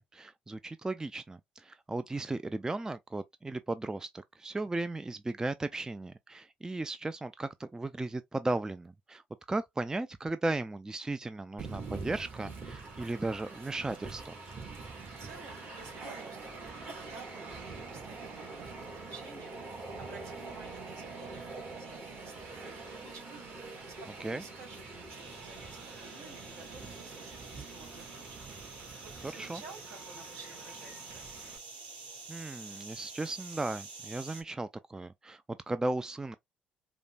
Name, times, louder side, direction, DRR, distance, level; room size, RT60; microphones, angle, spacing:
voice 1, 0.0-9.2 9.5-14.3 24.2-24.4 29.2-29.6 32.3-36.3, right 2 dB, 15° right, 0.3 m, -36 dB
Train, 11.6-31.6, right 3 dB, 45° right, 1.9 m, -45 dB
voice 2, 15.2-31.4, right 4 dB, 65° right, 1.9 m, -53 dB
sound 1, 25.1-34.4, right 4 dB, 85° right, 1.1 m, -48 dB
5.0 x 2.1 x 2.3 m
hypercardioid pair, 50°, 5 cm